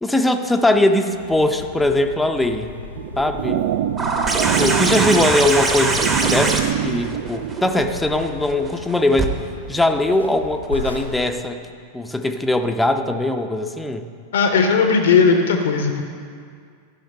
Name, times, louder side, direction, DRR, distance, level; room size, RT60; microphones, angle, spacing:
voice 1, 0.0-2.7 3.2-3.6 4.6-9.4 9.7-11.6 11.9-14.0, left 1 dB, 5° left, 5 dB, 0.6 m, -20 dB
sound 1, 1.1-11.2, left 3 dB, 90° left, 1.1 m, -37 dB
sound 2, 3.0-8.0, right 11 dB, 50° right, 0.3 m, -25 dB
sound 3, 4.0-9.3 10.6-10.7, right 3 dB, 20° right, 1.0 m, -23 dB
voice 2, 14.3-16.0, left 5 dB, 60° left, 4 dB, 0.7 m, -17 dB
13.5 x 5.7 x 5.3 m, 2.1 s
figure-of-eight pair, 90°, 0 cm